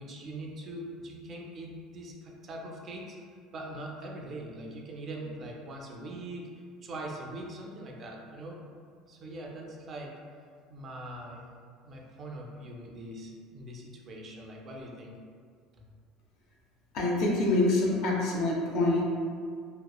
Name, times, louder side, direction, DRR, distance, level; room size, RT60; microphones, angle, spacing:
voice 1, 0.0-3.2 3.5-6.5 6.8-8.6 9.1-10.2 10.7-11.5 11.8-15.2 15.8-15.9, right 1 dB, 35° right, -1 dB, 0.4 m, -42 dB
voice 2, 16.9-19.0, left 2 dB, 65° left, -2 dB, 0.5 m, -26 dB
2.8 x 2.1 x 2.3 m, 2.1 s
cardioid pair, 125°, 0 cm